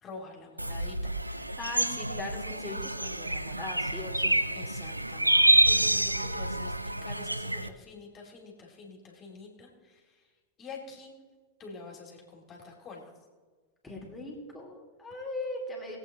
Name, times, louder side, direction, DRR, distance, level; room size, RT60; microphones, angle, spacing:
voice 1, 0.0-1.1 4.5-5.3 5.6-6.7 7.0-10.0 10.6-11.1 11.6-13.0, left 4 dB, 30° left, -1 dB, 2.7 m, -46 dB
sound 1, 0.6-7.7, right 1 dB, 85° right, 0.4 m, -27 dB
voice 2, 1.4-4.3 13.8-16.0, left 2 dB, 10° left, -2 dB, 2.9 m, -39 dB
20.0 x 8.4 x 3.0 m, 1.4 s
figure-of-eight pair, 90°, 0 cm